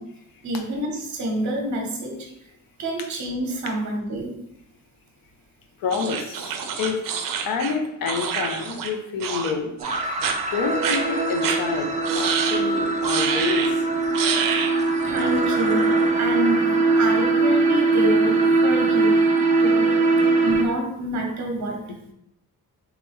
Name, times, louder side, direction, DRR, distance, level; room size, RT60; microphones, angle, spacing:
voice 1, 0.4-2.3 2.8-4.3 15.0-15.9 16.2-19.2 19.6-19.9 20.4-21.8, right 1 dB, 55° right, 2 dB, 0.9 m, -27 dB
voice 2, 5.8-9.7 10.5-11.9 12.1-13.7, left 5 dB, 90° left, 4 dB, 0.7 m, -28 dB
sound 1, 5.9-8.9 9.2-9.5 9.8-10.3 10.8-11.0 11.4-11.6 12.0-12.6 13.0-13.7 14.1-14.7, right 7 dB, 70° right, 0.6 m, -27 dB
sound 2, 9.8-20.6, right 3 dB, 25° right, 0.4 m, -21 dB
3.3 x 3.3 x 3.4 m, 0.80 s
wide cardioid pair, 160°, 34 cm